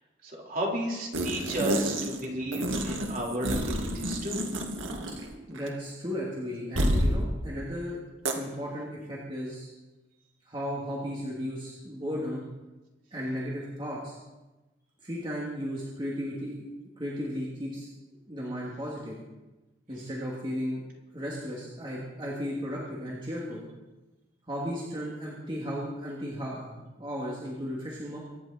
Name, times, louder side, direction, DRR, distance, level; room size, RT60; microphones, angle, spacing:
voice 1, 0.2-4.4, right 1 dB, 45° right, -3 dB, 4.4 m, -33 dB
sound 1, 1.1-2.2 2.5-5.3 5.6-5.7 6.8-7.1 8.3-8.4, right 1 dB, 85° right, 2.1 m, -29 dB
voice 2, 5.5-8.0 8.3-9.7 10.4-12.4 13.1-14.2 15.0-16.6 17.0-17.9 18.3-19.2 19.9-20.8 21.1-23.6 24.5-28.2, equal, 25° right, -5 dB, 2.7 m, -35 dB
24.5 x 11.0 x 4.4 m, 1.1 s
head